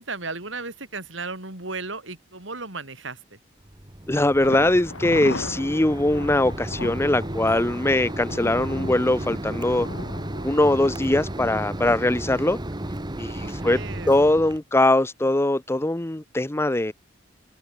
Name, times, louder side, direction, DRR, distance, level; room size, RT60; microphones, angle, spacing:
voice 1, 0.0-3.4 13.3-14.1, right 3 dB, 70° right, 5.8 m, -35 dB
Mechanisms, 3.6-14.6, right 1 dB, 25° right, 1.4 m, -33 dB
voice 2, 4.1-9.9 10.4-12.6 13.2-13.8 14.1-16.9, left 1 dB, 15° left, 0.8 m, -21 dB
Thunder, 4.4-12.2 12.5-12.6 13.0-13.1, left 2 dB, 90° left, 4.0 m, -38 dB
head